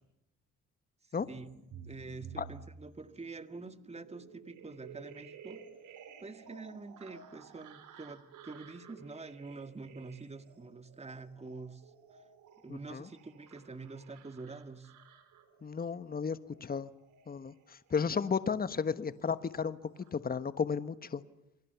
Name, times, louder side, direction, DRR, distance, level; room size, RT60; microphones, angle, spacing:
sound 1, 1.2-18.9 19.2-20.1, right 6 dB, 85° right, 4.5 m, -54 dB
voice 1, 1.8-5.7 6.2-11.9 12.6-15.0 18.1-18.2, right 3 dB, 20° right, 2.0 m, -46 dB
voice 2, 15.6-16.9 17.3-19.8 20.1-21.2, left 6 dB, 30° left, 1.3 m, -33 dB
29.0 x 24.0 x 7.1 m
cardioid pair, 90°, 30 cm